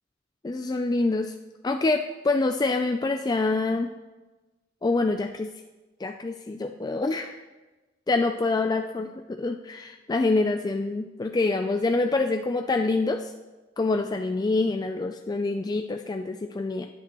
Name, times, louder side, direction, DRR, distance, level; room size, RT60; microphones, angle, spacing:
voice 1, 0.4-1.3 1.6-3.9 4.8-5.5 6.0-7.4 8.1-13.3 13.8-16.9, left 3 dB, 20° left, 6 dB, 0.3 m, -26 dB
16.5 x 8.6 x 3.0 m, 1.2 s
head